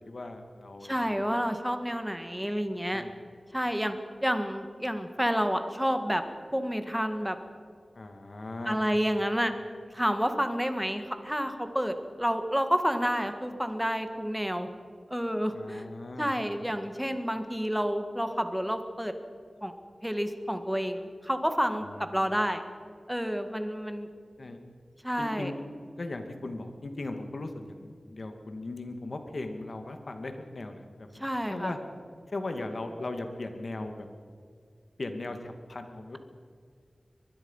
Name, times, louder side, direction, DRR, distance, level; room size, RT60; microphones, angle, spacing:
voice 1, 0.0-1.0 2.9-3.1 8.0-8.8 15.5-16.3 21.8-22.0 24.4-24.6 25.2-25.5 26.0-31.2 31.5-31.8 32.3-34.1 35.0-36.2, left 2 dB, 60° left, 6 dB, 2.3 m, -38 dB
voice 2, 0.8-3.0 3.5-4.0 4.2-6.2 6.5-7.4 8.7-9.5 9.9-14.7 15.1-15.9 16.2-19.1 19.6-19.7 20.0-22.6 23.1-24.1 25.0-25.5 31.1-31.7, equal, 5° right, 7 dB, 2.0 m, -29 dB
23.0 x 20.5 x 5.7 m, 2.1 s
wide cardioid pair, 90°, 0 cm